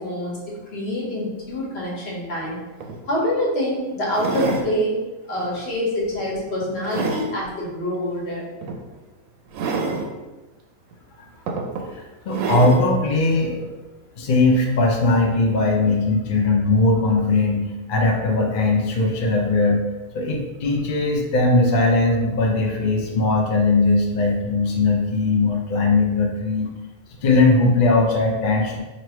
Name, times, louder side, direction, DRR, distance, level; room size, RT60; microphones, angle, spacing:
voice 1, 0.0-2.6 3.0-5.0 5.3-8.5, left 1 dB, 50° left, -4 dB, 1.2 m, -26 dB
sound 1, 2.4-2.5 2.8-3.0 4.1-4.7 5.3-5.6 6.1-7.3 8.6-8.8 9.5-10.1 10.9-11.0 11.5-11.9 12.3-12.9 13.6-13.7, right 4 dB, 70° right, 0.9 m, -27 dB
voice 2, 11.9-13.5 14.2-19.8 20.1-26.7 27.2-28.8, left 2 dB, 70° left, 0 dB, 0.4 m, -19 dB
3.1 x 2.6 x 4.3 m, 1.2 s
omnidirectional pair, 1.5 m